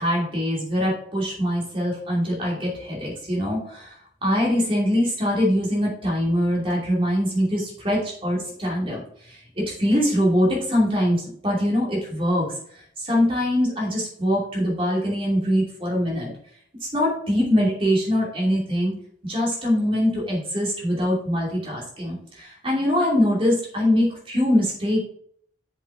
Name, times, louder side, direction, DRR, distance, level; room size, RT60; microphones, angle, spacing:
voice 1, 0.0-3.9 4.2-9.0 9.2-12.5 13.0-16.3 16.8-18.9 19.2-25.0, equal, 30° right, -4 dB, 2.7 m, -23 dB
7.4 x 5.7 x 4.8 m, 0.64 s
head